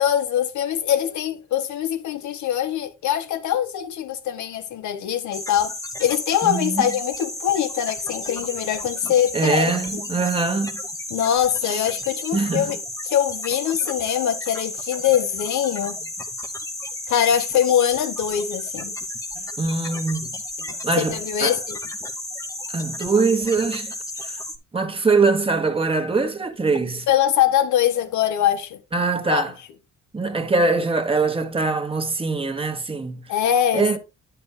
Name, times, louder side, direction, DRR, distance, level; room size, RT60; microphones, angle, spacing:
voice 1, 0.0-5.7 6.0-9.7 11.1-12.8 13.1-16.0 17.1-18.9 19.4-19.5 20.7-21.8 27.1-28.8 29.3-29.4 33.3-33.9, left 10 dB, 75° left, 0.9 m, -23 dB
sound 1, 5.3-24.6, left 1 dB, 10° left, 0.9 m, -33 dB
voice 2, 6.4-6.8 9.3-10.8 11.6-11.8 12.3-12.7 19.6-20.3 20.8-21.6 22.7-23.9 24.2-24.4 24.7-27.1 28.9-29.5 30.1-33.2 33.7-34.0, right 4 dB, 20° right, 1.2 m, -22 dB
9.4 x 7.0 x 2.2 m
cardioid pair, 90°, 30 cm